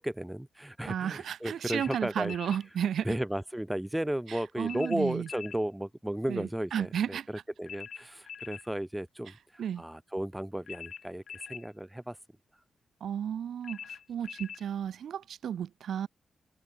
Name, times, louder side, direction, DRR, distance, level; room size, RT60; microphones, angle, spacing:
voice 1, 0.0-2.6 3.0-12.2 12.5-12.6, right 1 dB, 5° right, 1.3 m, -34 dB
voice 2, 0.9-3.1 4.3-5.3 6.3-7.3 9.6-9.8 13.0-16.1, right 9 dB, 75° right, 2.5 m, -33 dB
sound 1, 1.7-2.6 4.7-5.6 7.7-8.7 10.7-11.7 13.6-14.6, left 8 dB, 70° left, 7.0 m, -44 dB
cardioid pair, 65°, 0 cm